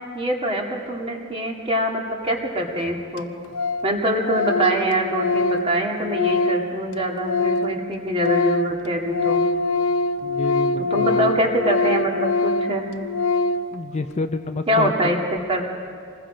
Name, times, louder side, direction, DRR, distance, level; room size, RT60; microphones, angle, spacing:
voice 1, 0.1-3.3 3.8-9.4 10.8-12.9 14.7-15.2 15.5-15.6, right 1 dB, 25° right, 0 dB, 2.3 m, -24 dB
Organ, 2.6-2.7 2.9-3.0 3.2-3.3 3.5-3.9 4.2-7.8 8.1-13.7, left 3 dB, 80° left, 0.7 m, -23 dB
voice 2, 10.2-11.3 13.7-15.1, left 3 dB, 30° left, 8 dB, 0.6 m, -28 dB
26.5 x 20.5 x 5.1 m, 2.3 s
head